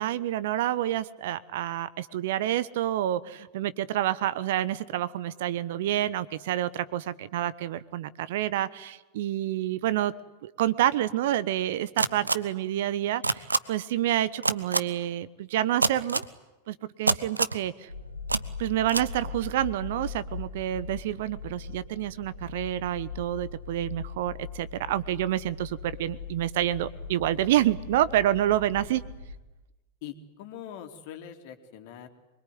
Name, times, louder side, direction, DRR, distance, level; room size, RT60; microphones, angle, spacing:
voice 1, 0.0-10.1 10.4-16.2 16.7-17.9 18.6-29.0, right 12 dB, 55° right, 17 dB, 1.0 m, -28 dB
sound 1, 12.0-12.3 13.2-13.6 14.4-14.8 15.8-16.3 17.1-17.6 18.3-18.4 18.9-19.0, right 3 dB, 80° right, 0.9 m, -24 dB
sound 2, 17.9-29.4, left 4 dB, 85° left, 1.8 m, -40 dB
voice 2, 30.0-32.1, left 9 dB, 50° left, 6 dB, 3.0 m, -43 dB
25.0 x 23.0 x 9.5 m, 1.0 s
figure-of-eight pair, 90°, 0 cm